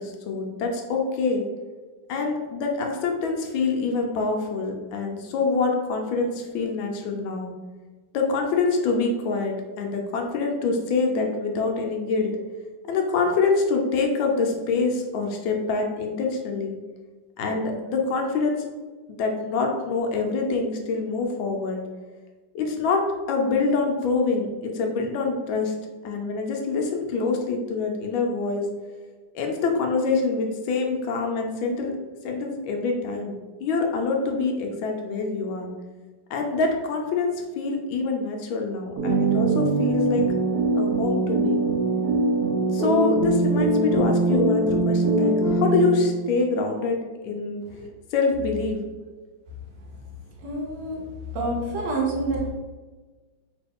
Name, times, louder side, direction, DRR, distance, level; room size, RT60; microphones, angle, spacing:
voice 1, 0.0-1.4 2.1-7.5 8.1-12.4 12.8-16.8 17.4-18.6 19.1-21.8 22.5-23.0 23.3-25.7 26.0-28.7 29.3-31.9 32.2-35.7 36.3-40.3 40.7-41.6 42.7-47.6 48.1-48.8, left 4 dB, 75° left, 2 dB, 1.3 m, -25 dB
sound 1, 39.0-46.3, right 2 dB, 85° right, 0.7 m, -22 dB
voice 2, 50.4-51.0 51.3-52.5, right 2 dB, 70° right, -1 dB, 1.1 m, -27 dB
3.1 x 3.0 x 3.4 m, 1.3 s
omnidirectional pair, 2.2 m